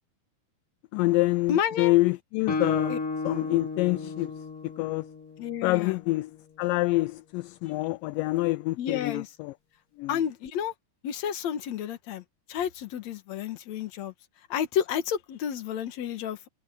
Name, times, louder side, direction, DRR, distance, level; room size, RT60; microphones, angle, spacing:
voice 1, 0.9-3.0 3.2-4.3 4.8-5.0 5.6-6.3 6.6-9.5 10.0-10.2, left 20 dB, 80° left, 2.1 m, -26 dB
voice 2, 1.5-1.9 2.9-3.0 5.4-6.0 8.8-9.3 10.1-10.7 11.0-12.2 12.5-14.1 14.5-16.5, left 9 dB, 55° left, 2.5 m, -30 dB
Guitar, 2.5-6.1, left 3 dB, 40° left, 3.0 m, -33 dB
omnidirectional pair, 4.2 m